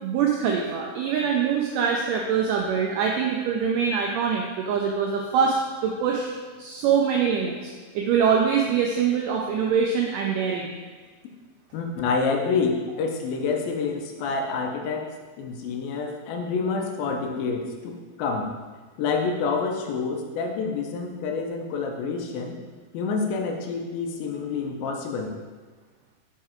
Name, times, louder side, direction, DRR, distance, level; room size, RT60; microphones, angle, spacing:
voice 1, 0.0-6.3 6.6-10.7, right 6 dB, 85° right, 0 dB, 1.8 m, -24 dB
voice 2, 11.7-15.1 15.4-17.9 18.2-18.5 19.0-22.6 22.9-25.3, left 4 dB, 80° left, 2 dB, 2.4 m, -27 dB
5.9 x 4.6 x 4.3 m, 1.4 s
omnidirectional pair, 4.3 m